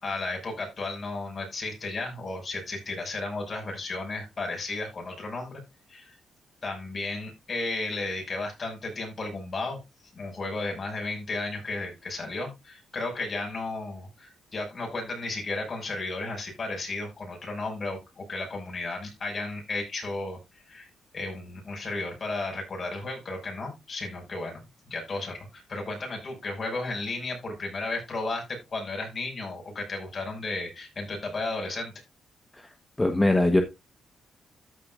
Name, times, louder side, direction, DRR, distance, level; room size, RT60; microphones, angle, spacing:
voice 1, 0.0-5.6 5.9-6.2 6.6-9.8 10.1-20.4 20.7-20.9 21.1-24.6 24.9-31.9, left 2 dB, 40° left, 6.0 m, -34 dB
voice 2, 33.0-33.6, left 1 dB, 15° left, 1.2 m, -21 dB
14.0 x 6.7 x 2.5 m
cardioid pair, 95°, 0 cm